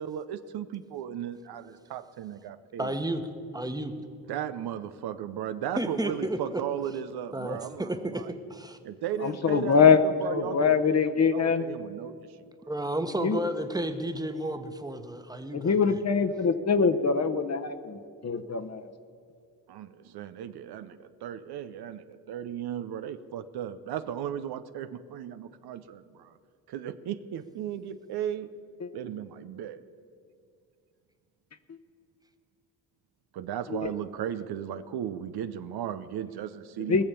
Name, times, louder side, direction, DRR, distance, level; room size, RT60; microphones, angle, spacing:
voice 1, 0.0-3.0 4.3-8.3 8.8-12.5 19.7-26.4 26.7-28.5 28.9-29.8 33.3-37.0, right 10 dB, 75° right, 12 dB, 0.7 m, -36 dB
voice 2, 2.8-3.2 3.5-3.9 5.8-6.6 7.3-8.2 8.5-8.8 12.7-15.8, right 1 dB, 10° right, 8 dB, 1.2 m, -32 dB
voice 3, 9.2-10.1 10.3-11.6 13.2-13.4 15.5-18.9 28.8-28.9 33.7-33.9 36.9-37.0, left 6 dB, 45° left, 8 dB, 1.0 m, -24 dB
20.0 x 6.9 x 7.0 m, 2.3 s
cardioid pair, 65°, 38 cm